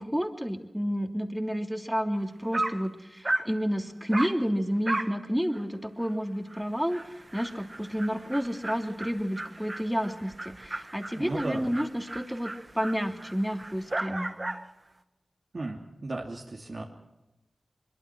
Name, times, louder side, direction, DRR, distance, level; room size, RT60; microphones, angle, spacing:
voice 1, 0.0-14.3, equal, 5° right, 5 dB, 2.9 m, -30 dB
Dog, 2.2-2.3 2.5-2.9 3.2-3.5 4.1-4.4 4.8-5.2 5.5-5.6 6.0-6.1 6.5-6.6 6.9-14.7, right 2 dB, 35° right, 1.7 m, -35 dB
voice 2, 11.1-11.7 15.5-16.8, right 2 dB, 55° right, -2 dB, 3.0 m, -35 dB
23.5 x 23.0 x 6.2 m, 0.96 s
cardioid pair, 55°, 0 cm